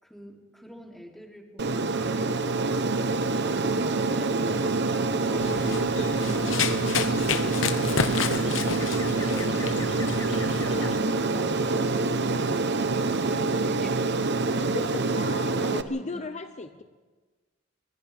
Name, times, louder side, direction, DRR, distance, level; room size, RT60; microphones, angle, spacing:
voice 1, 0.0-8.7 9.9-10.2 10.6-16.3, equal, ahead, -1 dB, 3.1 m, -46 dB
Aircraft, 1.6-15.8, right 3 dB, 60° right, 1.0 m, -26 dB
Run, 5.4-10.9, left 5 dB, 75° left, 1.0 m, -30 dB
voice 2, 9.2-9.6 14.7-16.8, left 3 dB, 35° left, 8 dB, 0.6 m, -36 dB
30.0 x 24.5 x 3.6 m, 1.4 s
head